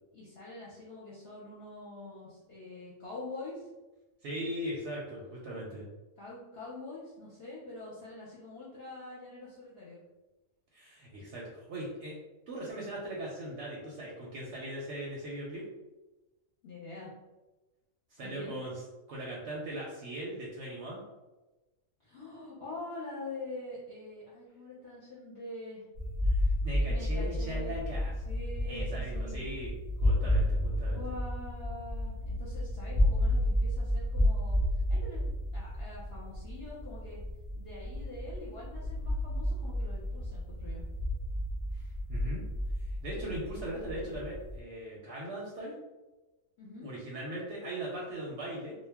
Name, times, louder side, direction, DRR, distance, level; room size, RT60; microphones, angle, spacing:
voice 1, 0.1-3.7 6.2-10.0 16.6-17.1 18.2-18.6 22.0-25.8 26.7-28.0 28.3-29.4 30.9-34.6 34.9-37.2 37.5-40.8 46.6-46.9, left 2 dB, 60° left, -7 dB, 0.8 m, -45 dB
voice 2, 4.2-5.9 10.7-12.2 12.5-15.6 18.1-21.0 26.3-28.2 28.6-29.7 30.0-31.1 41.7-42.4 42.8-45.8 46.8-48.7, right 1 dB, 65° right, -4 dB, 0.8 m, -39 dB
sound 1, 26.0-44.6, left 1 dB, 35° right, 0.6 m, -31 dB
2.2 x 2.0 x 3.3 m, 1.1 s
omnidirectional pair, 1.4 m